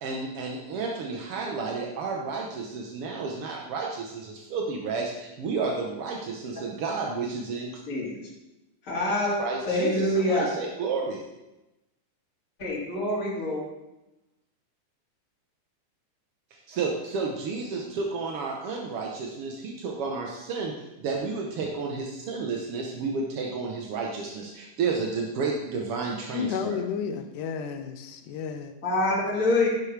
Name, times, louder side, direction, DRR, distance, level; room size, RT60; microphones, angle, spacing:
voice 1, 0.0-7.7 9.4-11.2 16.5-26.8, right 4 dB, 65° right, 0 dB, 1.4 m, -31 dB
voice 2, 8.9-9.4 9.7-10.5 12.6-13.6 28.8-29.7, left 1 dB, 25° left, -5 dB, 2.8 m, -25 dB
voice 3, 26.3-28.7, left 7 dB, 80° left, 8 dB, 2.2 m, -32 dB
11.0 x 10.5 x 3.4 m, 0.96 s
omnidirectional pair, 3.8 m